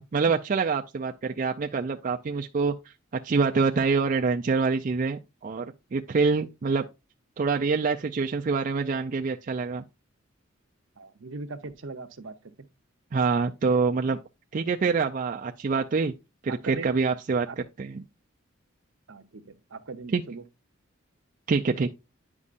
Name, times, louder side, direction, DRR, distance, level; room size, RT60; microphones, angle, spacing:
voice 1, 0.0-2.7 3.2-6.8 7.4-9.8 13.1-14.2 14.5-16.1 16.4-17.5 17.8-18.0 20.1-20.2 21.5-21.9, right 4 dB, 40° right, 0.4 m, -26 dB
voice 2, 11.0-12.5 15.0-15.1 16.5-16.9 17.5-17.6 19.1-20.4, right 3 dB, 65° right, 0.7 m, -40 dB
9.7 x 5.3 x 2.5 m
head